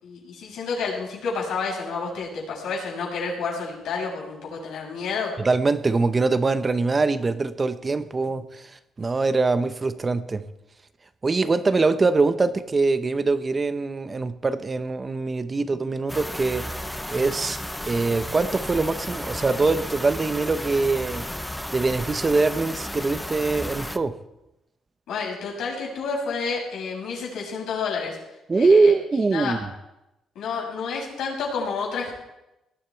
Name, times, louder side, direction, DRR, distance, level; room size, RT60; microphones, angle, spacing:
voice 1, 0.0-5.3 15.5-15.6 25.1-28.2 28.5-28.9 29.3-29.6 30.3-32.1, left 5 dB, 80° left, -2 dB, 6.3 m, -30 dB
voice 2, 5.4-10.5 11.2-16.7 17.1-17.6 17.9-21.3 21.7-24.2 28.5-29.7, right 3 dB, 30° right, 11 dB, 0.9 m, -23 dB
sound 1, 16.1-24.0, left 1 dB, 5° left, 0.8 m, -33 dB
19.0 x 12.0 x 4.6 m, 0.94 s
cardioid pair, 90°, 0 cm